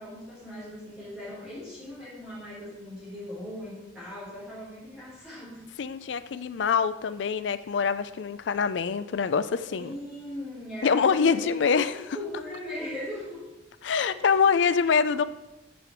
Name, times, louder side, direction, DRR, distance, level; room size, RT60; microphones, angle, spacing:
voice 1, 0.0-5.6 9.7-13.5 14.0-14.3, left 1 dB, 5° right, -12 dB, 3.6 m, -39 dB
voice 2, 5.8-9.9 10.8-12.0 13.8-15.2, left 6 dB, 70° left, 13 dB, 0.4 m, -25 dB
7.0 x 6.6 x 5.9 m, 0.97 s
head